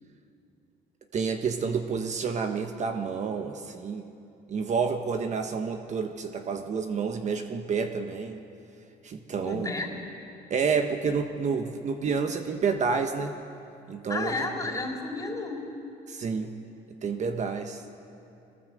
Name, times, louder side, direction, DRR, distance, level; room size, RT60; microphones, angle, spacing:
voice 1, 1.1-4.0 4.5-8.4 9.0-9.7 10.5-13.3 13.9-14.3 16.1-16.5 17.0-17.8, right 5 dB, 45° right, 6 dB, 1.2 m, -29 dB
voice 2, 9.4-10.0 14.1-15.6, left 3 dB, 20° left, 0 dB, 3.7 m, -32 dB
23.0 x 18.5 x 7.9 m, 2.7 s
cardioid pair, 110°, 17 cm